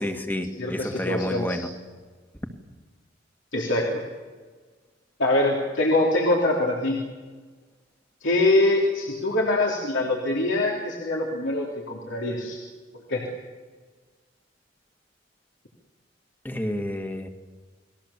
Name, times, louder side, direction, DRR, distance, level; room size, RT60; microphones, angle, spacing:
voice 1, 0.0-1.7 16.4-17.3, left 1 dB, 10° left, 6 dB, 2.0 m, -30 dB
voice 2, 0.6-1.6 3.5-4.0 5.2-7.0 8.2-12.6 13.1-13.2, left 2 dB, 75° left, -2 dB, 3.6 m, -24 dB
30.0 x 20.5 x 7.5 m, 1.4 s
head